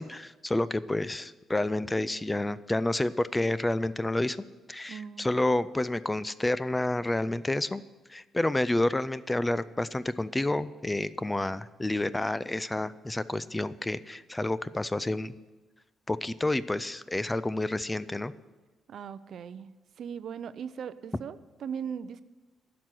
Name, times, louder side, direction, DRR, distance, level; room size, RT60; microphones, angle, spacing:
voice 1, 0.0-4.4 4.7-7.8 8.1-15.4 16.1-18.3, left 1 dB, 15° left, 16 dB, 0.4 m, -29 dB
voice 2, 4.9-5.3 18.9-19.7 20.0-22.2, right 7 dB, 65° right, 15 dB, 0.5 m, -38 dB
11.0 x 6.1 x 9.1 m, 1.2 s
cardioid pair, 90°, 0 cm